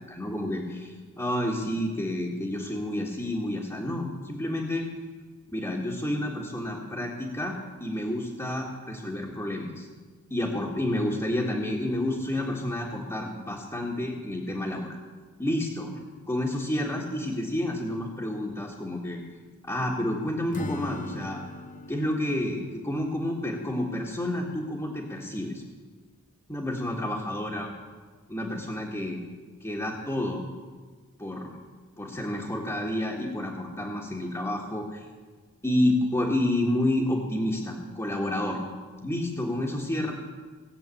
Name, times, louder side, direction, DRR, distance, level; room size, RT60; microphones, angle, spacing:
voice 1, 0.0-4.9 5.5-9.9 10.3-15.0 15.4-15.9 16.3-19.2 19.6-21.4 21.9-25.6 26.5-27.7 28.3-29.2 29.6-30.4 31.2-31.5 32.0-35.0 35.6-38.6 39.0-40.1, left 1 dB, 15° left, -5 dB, 1.7 m, -29 dB
Acoustic guitar / Strum, 20.5-24.4, left 2 dB, 35° left, 0.7 m, -41 dB
18.0 x 7.7 x 8.5 m, 1.4 s
head